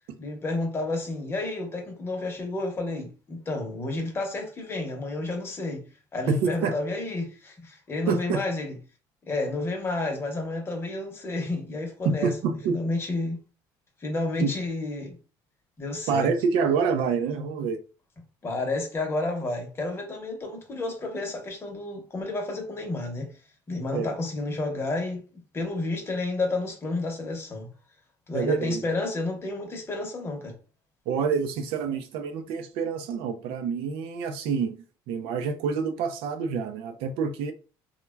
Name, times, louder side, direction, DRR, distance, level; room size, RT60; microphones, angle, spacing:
voice 1, 0.2-5.9 6.1-8.8 9.2-13.4 14.0-15.2 15.8-16.3 18.4-23.3 23.7-25.2 25.5-27.7 28.3-30.5, left 2 dB, 25° left, 0.9 m, -31 dB
voice 2, 6.3-6.8 8.1-8.4 12.0-12.7 14.4-14.5 16.1-17.8 23.9-24.1 28.3-28.8 31.1-34.7 35.1-37.5, right 5 dB, 75° right, 0.5 m, -27 dB
3.2 x 2.2 x 2.2 m
cardioid pair, 120°, 9 cm